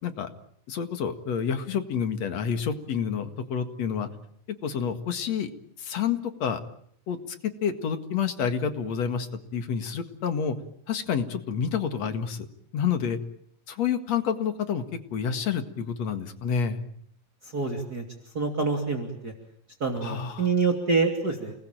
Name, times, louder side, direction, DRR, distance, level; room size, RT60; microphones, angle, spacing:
voice 1, 0.7-4.1 4.6-5.5 5.8-6.6 7.1-7.4 7.6-9.3 9.5-10.6 10.9-12.5 12.7-13.2 13.7-14.8 15.1-16.8 20.0-20.5, left 7 dB, 65° left, 8 dB, 3.0 m, -28 dB
voice 2, 17.5-18.0 18.3-19.3 19.8-21.5, right 4 dB, 35° right, 3 dB, 3.2 m, -26 dB
29.5 x 20.0 x 9.1 m, 0.68 s
omnidirectional pair, 3.3 m